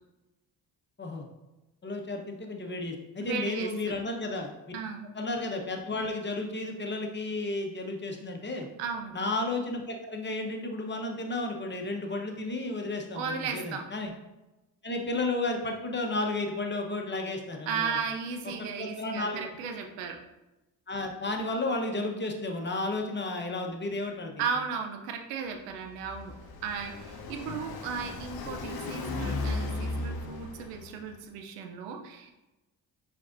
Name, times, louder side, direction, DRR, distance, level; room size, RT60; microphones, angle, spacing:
voice 1, 1.8-4.5 5.1-8.7 9.1-14.1 14.8-18.0 18.6-19.5 20.9-24.3 27.5-27.6, left 2 dB, 25° left, 3 dB, 0.9 m, -33 dB
voice 2, 3.2-3.9 4.7-5.1 8.8-9.1 13.1-13.8 17.7-20.2 24.4-26.3 26.6-32.3, right 6 dB, 85° right, 4 dB, 0.6 m, -35 dB
Car passing by, 25.6-31.1, left 3 dB, 50° left, 0.7 m, -36 dB
4.8 x 3.5 x 2.5 m, 1.0 s
supercardioid pair, 45°, 48 cm